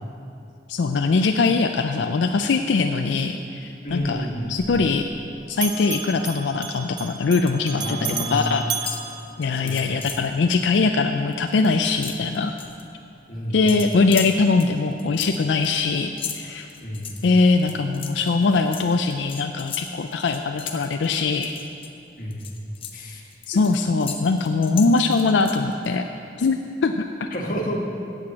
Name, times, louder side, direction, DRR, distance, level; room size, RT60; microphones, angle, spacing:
voice 1, 0.7-5.1 5.5-8.0 8.3-8.6 9.4-12.5 13.5-16.7 17.2-21.5 23.5-26.0 26.4-27.1, left 4 dB, 80° left, 5 dB, 0.4 m, -21 dB
voice 2, 3.8-4.7 7.7-8.6 9.5-10.0 13.3-13.7 16.8-17.2 22.2-23.6 27.3-27.8, equal, 50° left, 0 dB, 1.4 m, -31 dB
Bell, 3.9-5.3 5.5-10.0, right 7 dB, 25° right, 0.5 m, -34 dB
sound 1, 7.0-7.7 8.0-8.4 8.7-10.3 10.7-10.9 11.2-12.8 13.7-21.9 22.3-25.9, left 7 dB, 30° left, 0.7 m, -37 dB
8.4 x 7.9 x 7.5 m, 2.7 s
head